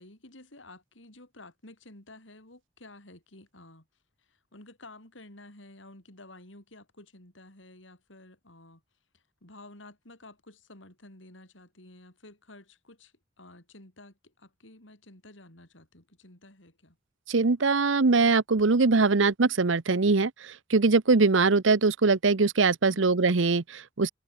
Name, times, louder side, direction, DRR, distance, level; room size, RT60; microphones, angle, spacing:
voice 1, 0.0-3.9 4.2-8.8 9.1-17.0 22.8-23.2, left 2 dB, 75° left, 5.8 m, -52 dB
voice 2, 17.3-24.1, right 4 dB, 80° right, 0.9 m, -22 dB
head